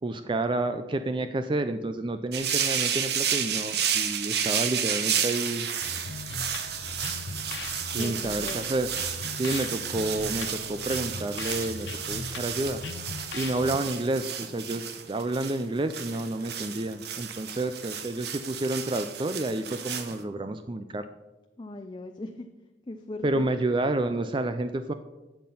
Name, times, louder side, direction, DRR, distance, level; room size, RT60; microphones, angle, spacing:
voice 1, 0.0-5.7 7.8-8.9 9.3-12.8 13.3-21.0 23.2-24.9, right 2 dB, 30° right, 9 dB, 0.4 m, -30 dB
sound 1, 2.3-20.2, right 8 dB, 65° right, 1.0 m, -32 dB
sound 2, 5.8-13.8, left 4 dB, 85° left, 0.7 m, -39 dB
voice 2, 7.9-8.6 21.6-22.5 22.9-23.5, left 2 dB, 25° left, 5 dB, 0.5 m, -38 dB
11.5 x 7.5 x 5.5 m, 1.1 s
head